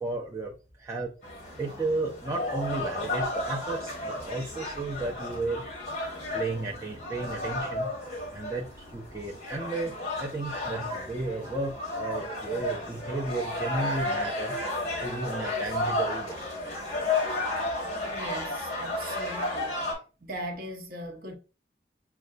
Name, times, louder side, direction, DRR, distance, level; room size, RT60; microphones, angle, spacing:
voice 1, 0.0-0.5 0.8-1.1 1.6-5.6 6.3-7.9 8.3-14.6 15.0-16.4, right 2 dB, 15° right, 0.5 m, -33 dB
sound 1, 1.2-19.9, left 2 dB, 40° left, 1.5 m, -33 dB
voice 2, 17.9-19.8 20.2-21.3, right 1 dB, 55° right, 0.9 m, -39 dB
6.4 x 2.3 x 2.4 m
head